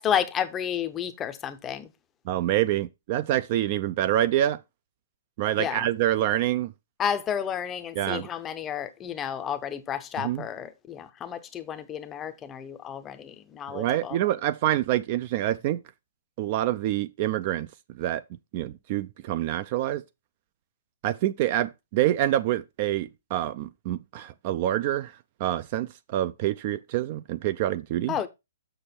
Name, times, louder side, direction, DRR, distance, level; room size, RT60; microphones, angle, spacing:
voice 1, 0.0-1.9 5.6-5.9 7.0-14.2 28.1-28.3, left 8 dB, 10° left, 0.6 m, -31 dB
voice 2, 2.3-4.6 5.4-6.7 8.0-8.3 10.2-10.5 13.7-15.8 16.4-17.7 18.0-18.2 18.5-20.0 21.0-25.1 25.4-28.2, right 13 dB, 30° right, 0.3 m, -26 dB
6.9 x 6.3 x 4.3 m
hypercardioid pair, 175°, 0 cm